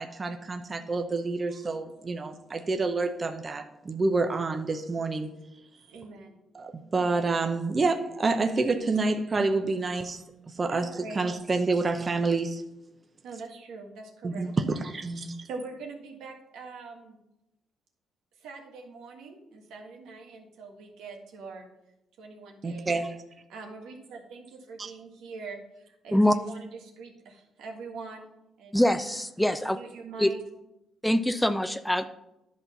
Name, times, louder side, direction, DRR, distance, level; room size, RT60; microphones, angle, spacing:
voice 1, 0.0-5.3 6.5-10.2 10.6-10.9 11.2-12.6 14.2-15.3 22.6-23.1 24.8-24.9, right 3 dB, 30° right, 5 dB, 0.7 m, -28 dB
voice 2, 5.8-6.4 9.9-10.1 10.7-11.2 13.2-14.6 15.1-17.2 18.4-21.7 22.2-22.9 23.5-28.3 28.6-28.8 29.6-30.4, right 4 dB, 85° right, 2 dB, 1.6 m, -43 dB
voice 3, 28.7-29.8 30.2-30.3 31.0-32.1, left 1 dB, 5° left, 11 dB, 0.5 m, -24 dB
11.0 x 4.0 x 5.7 m, 0.88 s
cardioid pair, 90°, 0 cm